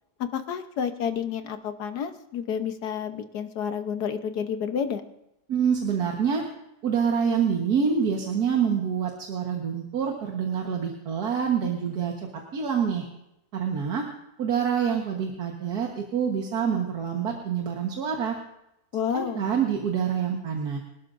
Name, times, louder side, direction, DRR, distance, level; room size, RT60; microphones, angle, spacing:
voice 1, 0.2-5.0 18.9-19.4, left 7 dB, 75° left, 8 dB, 1.6 m, -30 dB
voice 2, 5.5-6.4 6.8-13.1 13.5-14.1 14.4-18.4 19.1-20.8, right 7 dB, 70° right, 1 dB, 1.8 m, -26 dB
25.0 x 12.5 x 2.6 m, 0.86 s
omnidirectional pair, 1.7 m